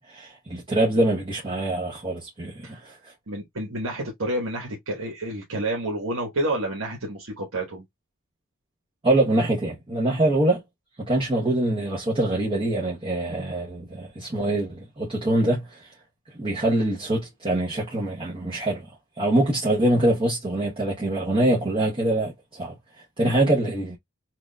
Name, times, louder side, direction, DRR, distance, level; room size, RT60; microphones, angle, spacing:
voice 1, 0.1-3.1 9.0-10.6 11.0-15.9 16.3-18.9 19.2-22.7 23.2-24.0, right 1 dB, 25° right, 0.9 m, -24 dB
voice 2, 3.3-7.8, right 1 dB, 80° right, 1.3 m, -29 dB
5.9 x 2.5 x 2.2 m
head